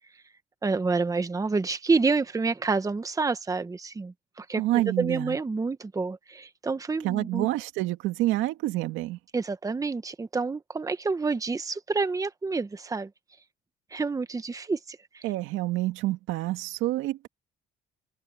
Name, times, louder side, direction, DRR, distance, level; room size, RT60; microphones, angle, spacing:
voice 1, 0.6-7.5 9.3-13.1 13.9-15.2, right 4 dB, 15° right, 1.2 m, -28 dB
voice 2, 4.6-5.4 7.0-9.2 15.2-17.3, right 16 dB, 85° right, 2.0 m, -28 dB
cardioid pair, 115°, 20 cm